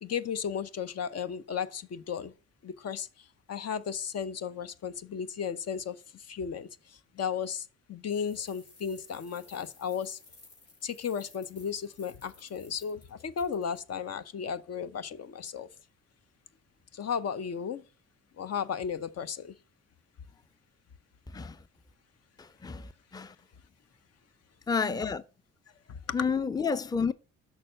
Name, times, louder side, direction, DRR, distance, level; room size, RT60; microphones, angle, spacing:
voice 1, 0.0-2.3 2.6-10.2 10.8-15.7 16.9-17.8 18.4-19.6 25.9-26.2, left 7 dB, 55° left, 0.8 m, -35 dB
sound 1, 8.1-13.8, left 3 dB, 85° left, 3.6 m, -56 dB
voice 2, 22.4-23.3 24.7-25.2 26.1-27.1, left 5 dB, 15° left, 0.6 m, -30 dB
6.5 x 5.6 x 6.5 m
supercardioid pair, 60°, 29 cm